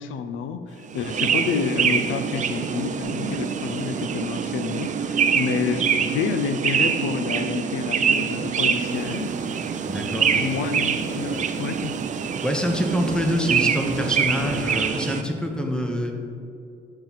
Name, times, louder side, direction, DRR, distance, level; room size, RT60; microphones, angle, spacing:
voice 1, 0.0-9.3 10.3-12.0, left 6 dB, 85° left, 9 dB, 0.4 m, -29 dB
sound 1, 0.9-15.2, right 7 dB, 40° right, 0.4 m, -25 dB
Bass guitar, 3.0-9.3, right 1 dB, 65° left, 1.4 m, -44 dB
sound 2, 8.7-14.8, right 4 dB, 85° right, 0.7 m, -42 dB
voice 2, 9.9-10.5 12.4-16.1, equal, 5° left, 2 dB, 0.8 m, -25 dB
7.8 x 4.4 x 4.0 m, 2.6 s
cardioid pair, 90°, 20 cm